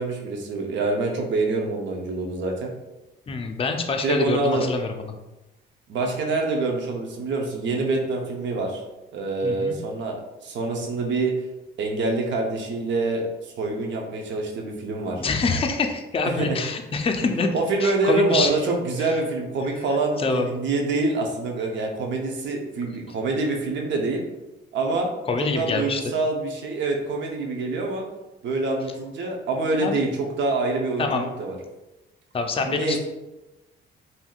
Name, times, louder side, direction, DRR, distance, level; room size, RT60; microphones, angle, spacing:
voice 1, 0.0-2.7 4.0-4.7 5.9-8.8 9.1-10.2 10.4-11.3 11.8-15.2 16.2-16.6 17.5-24.2 24.7-25.1 25.4-28.0 28.4-31.6 32.6-33.0, right 3 dB, 65° right, 1 dB, 0.7 m, -26 dB
voice 2, 3.3-5.1 9.4-9.8 15.2-17.5 17.8-18.5 19.0-19.2 20.2-20.5 25.3-26.0 29.8-30.0 31.0-31.3 32.3-33.0, left 4 dB, 30° left, 4 dB, 0.4 m, -25 dB
3.5 x 2.7 x 2.3 m, 1.0 s
cardioid pair, 90°, 20 cm